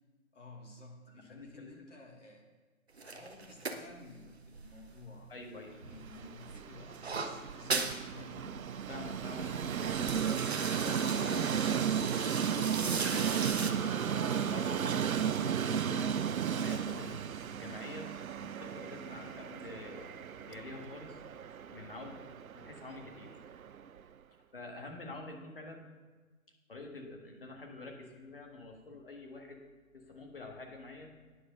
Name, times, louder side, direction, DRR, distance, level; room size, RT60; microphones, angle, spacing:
voice 1, 0.3-2.4 3.0-8.6, left 2 dB, 60° left, 0 dB, 2.1 m, -53 dB
voice 2, 1.1-1.7 5.3-5.7 8.9-12.0 12.9-13.6 13.9-18.1 18.4-21.2 21.7-23.4 24.5-25.9 26.7-29.6 29.9-31.1, left 2 dB, 40° left, 1 dB, 1.6 m, -47 dB
sound 1, 3.0-5.5 5.8-8.0 8.4-8.5 8.7-9.1 9.6-13.7, right 4 dB, 50° right, 0.8 m, -39 dB
Train, 5.9-24.0, right 8 dB, 75° right, 0.6 m, -35 dB
sound 2, 11.1-16.5, equal, 15° right, 2.3 m, -46 dB
9.6 x 6.2 x 6.7 m, 1.3 s
hypercardioid pair, 175°, 42 cm